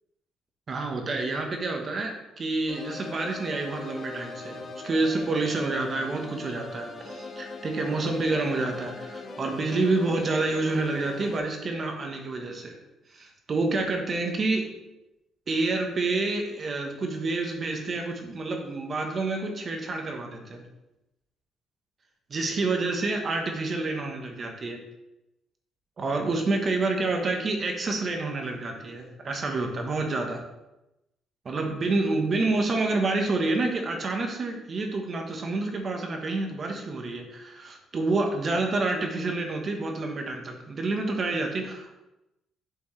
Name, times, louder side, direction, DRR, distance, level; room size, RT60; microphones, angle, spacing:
voice 1, 0.7-12.8 13.1-14.6 15.5-20.6 22.3-24.8 26.0-30.4 31.4-42.0, right 3 dB, 35° right, 3 dB, 1.1 m, -28 dB
sound 1, 2.7-11.4, left 2 dB, 40° left, 1.0 m, -41 dB
7.1 x 6.0 x 3.2 m, 0.94 s
cardioid pair, 135°, 0 cm